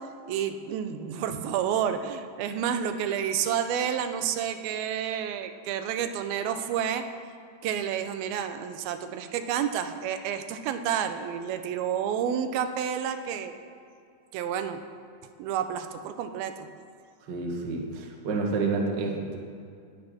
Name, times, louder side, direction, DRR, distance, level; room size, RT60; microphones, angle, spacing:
voice 1, 0.3-7.0 7.6-13.5 14.3-14.8 15.4-16.7, right 8 dB, 90° right, 9 dB, 2.6 m, -30 dB
voice 2, 17.3-19.4, right 3 dB, 70° right, 0 dB, 1.0 m, -29 dB
19.5 x 6.8 x 4.2 m, 2.4 s
omnidirectional pair, 4.2 m